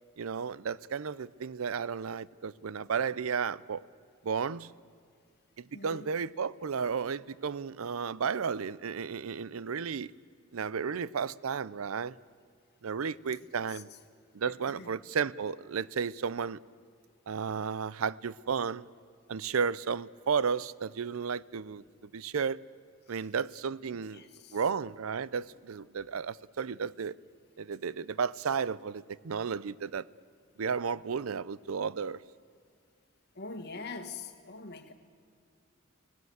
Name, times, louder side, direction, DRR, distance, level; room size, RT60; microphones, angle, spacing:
voice 1, 0.2-3.8 4.2-4.7 5.6-10.1 10.5-12.1 12.8-13.9 14.3-16.6 17.3-18.9 19.3-21.8 22.1-22.6 23.1-24.2 24.5-27.1 27.6-30.0 30.6-32.2, right 6 dB, 80° right, 0.5 m, -33 dB
voice 2, 5.7-6.1 13.7-14.0 14.5-14.9 23.1-23.2 23.9-24.6 33.4-34.9, left 3 dB, 55° left, 1.8 m, -44 dB
25.0 x 17.5 x 8.1 m
head